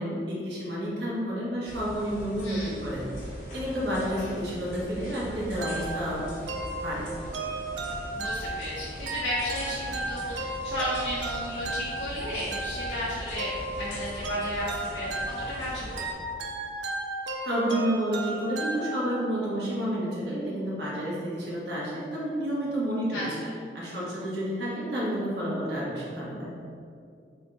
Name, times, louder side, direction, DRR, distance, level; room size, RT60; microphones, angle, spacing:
voice 1, 0.0-3.1 3.5-6.3 6.8-7.1 17.4-23.3 23.7-26.5, equal, 65° right, -6 dB, 1.0 m, -30 dB
sound 1, 1.7-16.1, equal, 45° left, 1.0 m, -41 dB
sound 2, 5.6-19.4, right 2 dB, 85° right, 0.4 m, -35 dB
voice 2, 8.1-16.1 23.1-23.5, left 1 dB, 80° left, -8 dB, 0.7 m, -34 dB
3.5 x 2.3 x 4.0 m, 2.3 s
head